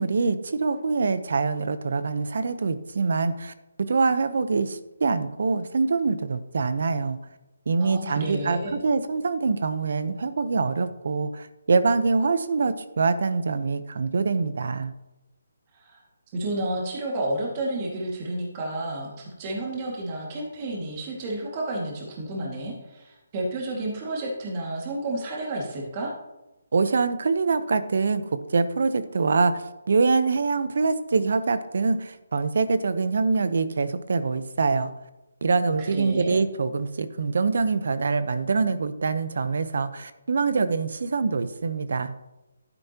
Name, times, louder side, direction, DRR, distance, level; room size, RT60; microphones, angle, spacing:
voice 1, 0.0-3.5 3.9-7.2 7.7-14.9 26.7-34.9 35.4-42.1, right 4 dB, 65° right, 12 dB, 0.8 m, -24 dB
voice 2, 7.8-8.7 15.7-16.0 16.3-26.1 35.8-36.4, right 1 dB, 30° right, -3 dB, 2.1 m, -31 dB
12.0 x 9.5 x 3.0 m, 0.98 s
hypercardioid pair, 160°, 0 cm